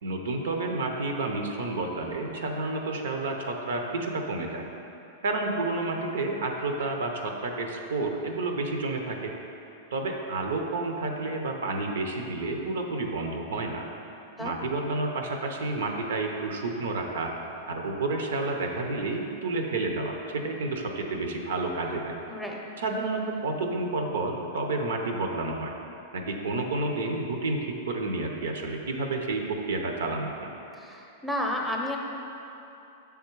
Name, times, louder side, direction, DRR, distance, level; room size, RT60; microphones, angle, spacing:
voice 1, 0.0-4.6 5.2-9.3 9.9-13.8 14.4-17.3 17.7-22.2 22.8-25.7 26.3-27.6 27.9-30.5, right 2 dB, 85° right, 3 dB, 0.6 m, -30 dB
voice 2, 22.3-22.6 30.8-32.0, left 1 dB, ahead, 0 dB, 0.6 m, -31 dB
6.4 x 3.5 x 4.6 m, 2.9 s
hypercardioid pair, 120°, 0 cm